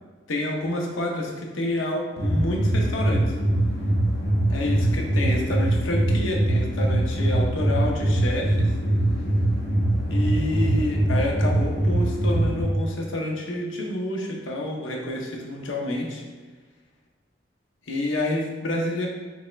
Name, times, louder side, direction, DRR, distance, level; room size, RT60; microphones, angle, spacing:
voice 1, 0.3-3.3 4.5-8.7 10.1-16.2 17.9-19.1, left 1 dB, 90° left, 0 dB, 0.7 m, -28 dB
sound 1, 2.2-12.6, right 1 dB, 55° left, 1.0 m, -22 dB
3.4 x 3.2 x 3.1 m, 1.4 s
head